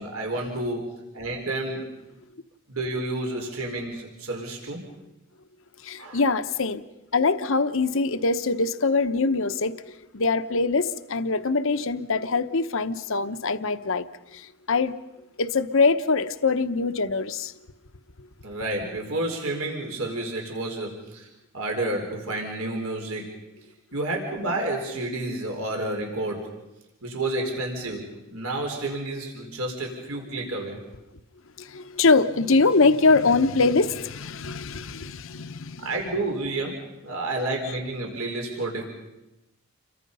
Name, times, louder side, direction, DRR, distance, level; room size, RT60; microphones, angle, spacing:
voice 1, 0.0-1.9 2.7-4.8 6.0-6.2 18.4-21.3 21.5-23.3 23.9-26.5 27.0-30.8 35.8-38.8, right 2 dB, 75° right, 4.6 m, -30 dB
voice 2, 5.8-6.8 7.1-9.8 10.1-14.0 14.3-14.9 15.4-17.5 31.6-35.9, left 3 dB, 60° left, 1.0 m, -23 dB
29.5 x 23.5 x 5.6 m
head